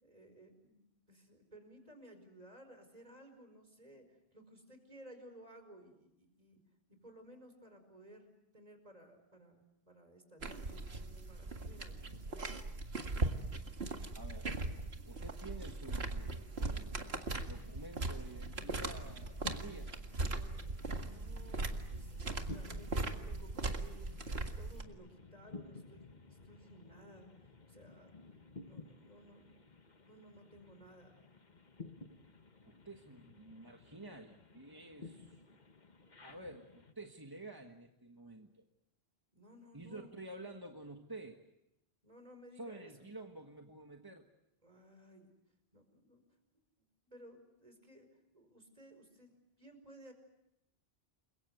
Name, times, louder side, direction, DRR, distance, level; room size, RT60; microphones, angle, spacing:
voice 1, 0.0-6.6 6.9-12.7 20.3-28.1 28.6-29.6 30.1-31.1 39.3-40.2 42.0-43.1 44.6-45.3 45.7-46.2 47.0-48.1 48.3-50.1, right 1 dB, 40° right, 6 dB, 5.2 m, -58 dB
sound 1, 10.4-24.8, right 2 dB, 80° right, 2.2 m, -39 dB
voice 2, 14.1-14.5 15.0-19.9 32.6-35.6 36.2-38.6 39.7-41.4 42.5-44.3, right 2 dB, 20° right, 3 dB, 1.5 m, -50 dB
sound 2, 17.6-36.9, left 3 dB, 45° left, 1.5 m, -55 dB
29.5 x 23.0 x 8.1 m, 0.86 s
omnidirectional pair, 1.1 m